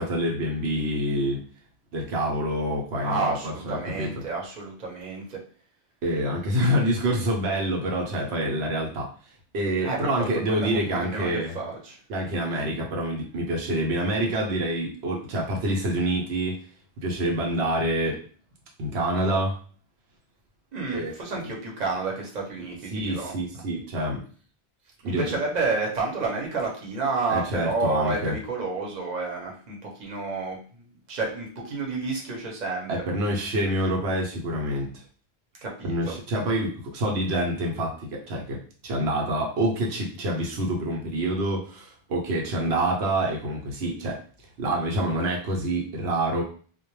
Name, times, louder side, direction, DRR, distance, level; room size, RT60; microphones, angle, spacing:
voice 1, 0.0-1.4 1.9-4.1 6.0-9.1 9.5-11.5 12.1-16.6 17.0-18.2 18.8-19.6 20.9-21.1 22.6-22.7 22.9-24.2 25.0-25.3 27.3-28.3 32.9-34.9 35.8-44.2 44.6-46.4, right 1 dB, 80° right, -1 dB, 0.9 m, -27 dB
voice 2, 3.0-5.4 9.8-10.1 10.5-12.0 20.7-23.3 25.0-32.9 35.6-36.1, right 3 dB, 45° right, -1 dB, 0.8 m, -30 dB
2.2 x 2.1 x 3.0 m, 0.43 s
omnidirectional pair, 1.1 m